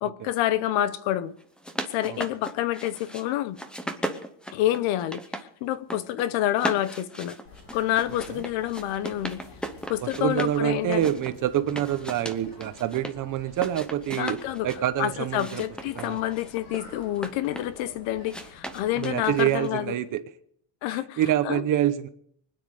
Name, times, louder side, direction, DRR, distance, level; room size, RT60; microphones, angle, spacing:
voice 1, 0.0-1.3 1.9-3.6 4.5-5.2 5.6-7.4 7.7-9.4 9.9-11.1 14.2-14.7 15.0-19.9 20.8-21.6, left 13 dB, 80° left, 1.1 m, -28 dB
sound 1, 1.4-3.2 3.6-5.5 5.7-6.3 6.6-10.6 10.9-13.1 13.5-14.8 15.3-17.8 18.3-19.8, equal, ahead, 0.8 m, -37 dB
sound 2, 7.5-19.6, left 3 dB, 50° left, 3.3 m, -49 dB
voice 2, 10.0-14.4 14.6-15.6 16.0-16.2 19.0-20.2 21.2-22.1, right 12 dB, 45° right, 0.9 m, -26 dB
24.5 x 9.8 x 4.9 m
cardioid pair, 175°, 46 cm